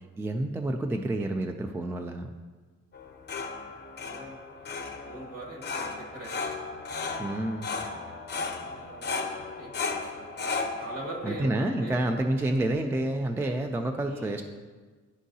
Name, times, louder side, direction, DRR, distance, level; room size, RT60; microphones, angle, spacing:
voice 1, 0.2-2.3 7.2-7.7 11.2-14.4, right 1 dB, 10° right, 5 dB, 0.3 m, -29 dB
sound 1, 2.9-12.7, left 4 dB, 35° left, 0.7 m, -36 dB
voice 2, 4.0-4.7 5.0-6.5 8.5-9.8 10.8-11.5 11.8-12.0 14.0-14.3, right 1 dB, 55° right, -1 dB, 2.0 m, -42 dB
11.0 x 3.6 x 2.7 m, 1.4 s
cardioid pair, 90°, 30 cm